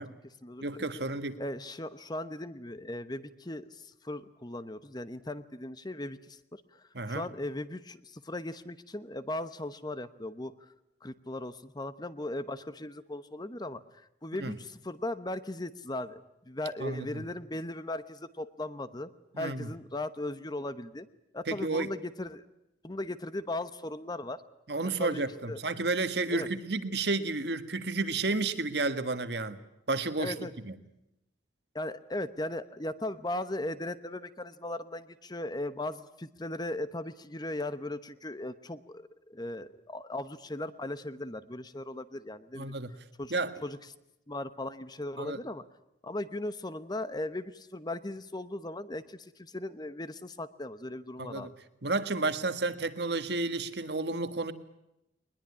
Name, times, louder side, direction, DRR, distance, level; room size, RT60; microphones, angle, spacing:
voice 1, 0.0-0.6 1.4-10.5 11.0-13.8 14.2-19.1 19.4-21.1 21.3-22.4 22.8-24.4 25.0-25.6 26.3-26.5 30.2-30.5 31.7-42.7 43.2-43.3 43.6-43.8 44.3-45.6 46.0-51.5, left 1 dB, 20° left, 13 dB, 1.0 m, -38 dB
voice 2, 0.6-1.4 6.9-7.3 14.4-14.6 16.8-17.2 19.3-19.7 21.5-21.9 24.7-29.6 29.9-30.8 42.5-42.9 43.3-43.5 45.2-45.4 51.2-51.5 51.8-54.5, right 3 dB, 60° right, 10 dB, 1.7 m, -31 dB
21.5 x 21.0 x 9.7 m, 0.86 s
head